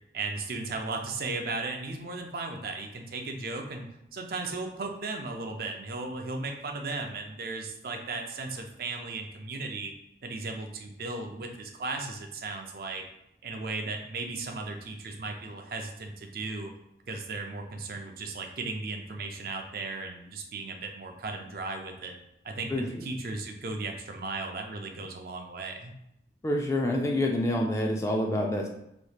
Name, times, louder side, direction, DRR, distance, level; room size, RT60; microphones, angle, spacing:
voice 1, 0.1-3.8 4.1-9.9 10.2-13.0 13.4-16.7 17.1-22.2 22.4-22.7 23.0-25.9, right 3 dB, 55° right, 3 dB, 0.4 m, -36 dB
voice 2, 22.7-23.0 26.4-28.7, left 1 dB, 15° left, 1 dB, 0.3 m, -27 dB
3.3 x 3.0 x 2.3 m, 0.81 s
head